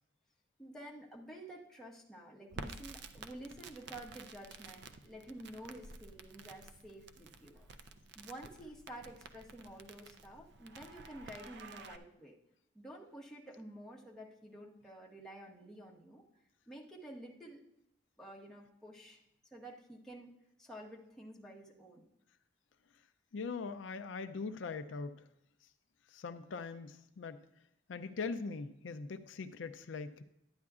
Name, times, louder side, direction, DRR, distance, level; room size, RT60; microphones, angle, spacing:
voice 1, 0.6-7.7 8.1-12.3 12.7-16.2 16.7-17.6 18.2-19.2 19.5-20.3 20.6-22.0, right 1 dB, 5° left, -4 dB, 1.2 m, -50 dB
Crackle, 2.5-12.0, right 4 dB, 65° right, 0.5 m, -51 dB
voice 2, 23.3-25.3 26.1-27.4 27.9-30.2, left 4 dB, 80° left, 10 dB, 0.5 m, -41 dB
12.0 x 9.5 x 2.4 m, 0.79 s
head